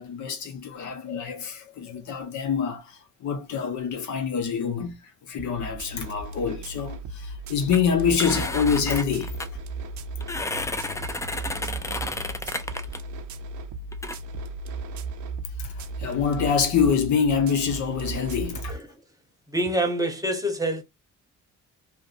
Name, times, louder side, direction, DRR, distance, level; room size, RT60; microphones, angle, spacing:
voice 1, 0.0-5.0 5.3-9.6 15.6-18.8, left 6 dB, 75° left, 0.9 m, -26 dB
sound 1, 5.4-18.7, right 3 dB, 75° right, 0.5 m, -35 dB
sound 2, 7.7-7.8 8.2-9.5 10.2-13.0 13.9-14.2, left 2 dB, 10° left, 0.3 m, -32 dB
voice 2, 19.5-20.8, right 1 dB, 10° right, 0.9 m, -26 dB
2.6 x 2.1 x 2.4 m
cardioid pair, 75°, 29 cm